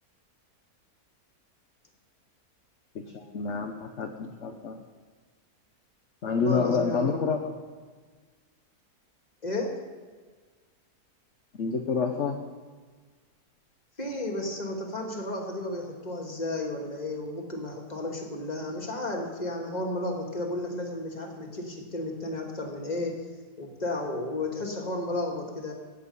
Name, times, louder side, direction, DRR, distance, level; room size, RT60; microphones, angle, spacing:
voice 1, 2.9-4.8 6.2-7.5 11.6-12.4, left 5 dB, 50° left, 4 dB, 1.2 m, -28 dB
voice 2, 6.2-7.2 9.4-9.8 14.0-23.2 23.6-25.7, left 1 dB, 25° left, 1 dB, 2.2 m, -33 dB
17.0 x 8.5 x 5.5 m, 1.5 s
omnidirectional pair, 1.7 m